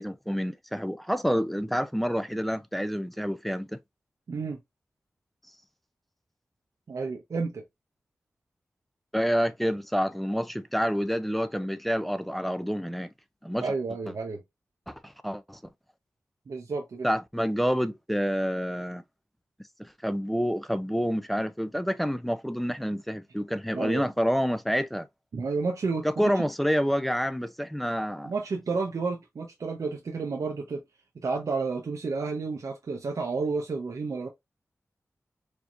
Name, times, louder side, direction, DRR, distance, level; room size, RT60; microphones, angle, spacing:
voice 1, 0.0-3.7 9.1-13.1 13.4-13.7 14.9-15.6 17.0-19.0 19.8-25.1 26.0-28.3, equal, ahead, 0.4 m, -28 dB
voice 2, 4.3-4.6 6.9-7.6 13.6-14.4 16.5-17.1 23.7-24.0 25.3-26.5 28.2-30.8 31.2-34.3, right 4 dB, 80° right, 0.8 m, -31 dB
4.5 x 2.8 x 2.5 m
wide cardioid pair, 85°, 5 cm